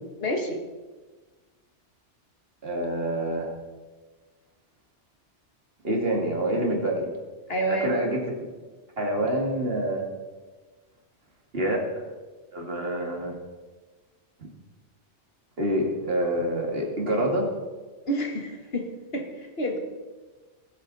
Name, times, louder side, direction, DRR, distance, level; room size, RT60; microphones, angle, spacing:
voice 1, 0.2-0.6 7.5-8.0 18.1-18.8 19.1-19.8, right 1 dB, 55° left, 3 dB, 1.9 m, -28 dB
voice 2, 2.6-3.5 5.8-7.2 7.7-8.2 9.0-10.1 11.5-12.0 12.5-13.3 15.6-17.5, right 1 dB, 55° right, 0 dB, 2.5 m, -26 dB
19.5 x 8.2 x 4.1 m, 1.3 s
omnidirectional pair, 1.2 m